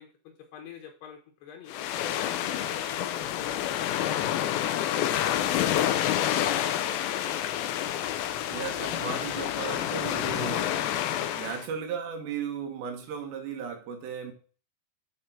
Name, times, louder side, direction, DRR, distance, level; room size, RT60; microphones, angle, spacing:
voice 1, 0.0-1.8 2.2-5.7 6.1-7.0 7.2-7.7, left 7 dB, 70° left, 3.1 m, -47 dB
sound 1, 1.7-11.7, left 11 dB, 90° left, 2.1 m, -28 dB
voice 2, 4.1-4.5 6.3-6.6 8.5-10.7 11.3-14.3, right 7 dB, 75° right, 3.7 m, -36 dB
10.0 x 4.6 x 5.8 m
omnidirectional pair, 5.1 m